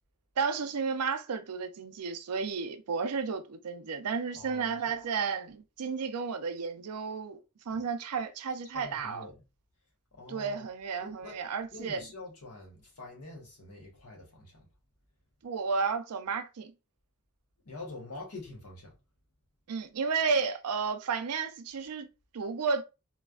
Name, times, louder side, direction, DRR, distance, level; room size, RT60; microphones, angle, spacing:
voice 1, 0.4-7.4 7.7-9.3 10.3-12.0 15.4-16.7 19.7-22.1 22.3-22.8, right 5 dB, 90° right, 0.5 m, -32 dB
voice 2, 4.3-4.9 7.7-7.8 8.7-9.4 10.1-10.6 11.0-11.4 11.7-14.7 17.6-19.0, left 2 dB, 80° left, 1.2 m, -45 dB
3.2 x 2.1 x 2.3 m
head